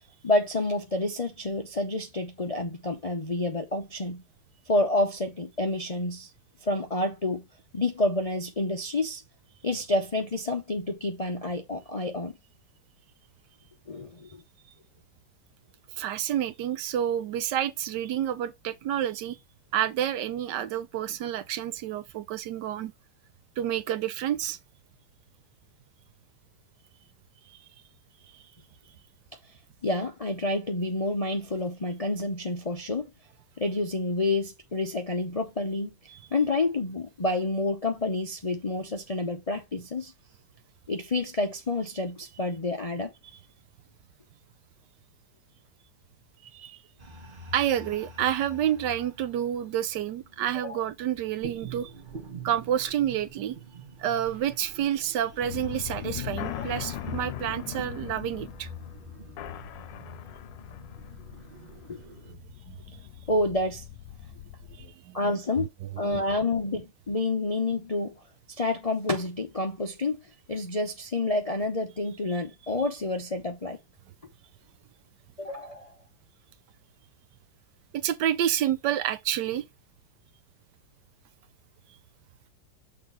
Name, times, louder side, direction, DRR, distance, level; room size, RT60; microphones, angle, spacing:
voice 1, 0.2-4.2 4.7-6.3 6.6-7.5 7.7-9.2 9.6-12.4 13.9-14.4 29.8-33.1 33.6-35.9 36.3-40.1 40.9-43.1 50.6-50.8 56.6-56.7 61.9-62.0 63.3-63.8 65.1-65.7 66.0-68.2 68.5-70.2 70.5-73.8 75.4-75.9, left 2 dB, 40° left, 0.5 m, -29 dB
voice 2, 16.0-19.4 19.7-22.9 23.6-24.6 36.1-36.2 46.5-46.8 47.5-51.9 52.4-53.6 54.0-58.7 62.2-62.4 62.7-62.8 64.7-65.3 66.0-66.2 77.9-79.7, right 10 dB, 75° right, 1.3 m, -29 dB
sound 1, 47.0-62.4, right 2 dB, 30° right, 1.4 m, -45 dB
sound 2, 55.4-64.9, left 13 dB, 90° left, 1.3 m, -40 dB
6.6 x 3.6 x 5.5 m
omnidirectional pair, 1.9 m